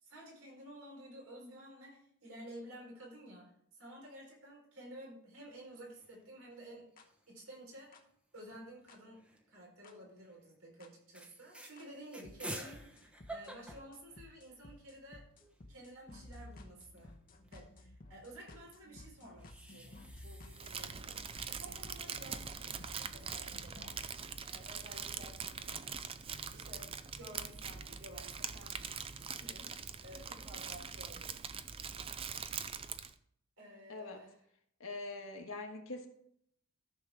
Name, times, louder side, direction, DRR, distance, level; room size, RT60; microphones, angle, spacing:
voice 1, 0.0-6.9 7.3-8.0 8.3-9.2 9.5-15.3 15.7-17.1 17.5-21.2 21.5-24.0 24.5-25.9 26.5-28.9 29.4-29.7 30.0-31.5 33.6-34.3, right 1 dB, 75° right, 4.3 m, -52 dB
sound 1, 5.5-6.2 6.5-6.6 6.8-7.4 8.4-9.6 10.2-10.4 10.8-10.9 11.1-14.8 15.1-15.2 15.4-17.7 18.9-20.8, right 1 dB, 5° right, 1.1 m, -50 dB
sound 2, 7.0-7.1 7.9-8.0 8.9-9.0 9.8-9.9 10.8-10.9 11.8-11.9 12.2-24.0, left 1 dB, 40° left, 1.1 m, -55 dB
Crumpling crinkling, 20.5-33.1, right 6 dB, 25° right, 0.4 m, -43 dB
voice 2, 33.9-34.2 34.8-36.1, left 2 dB, 65° left, 1.6 m, -43 dB
14.0 x 6.8 x 3.6 m
head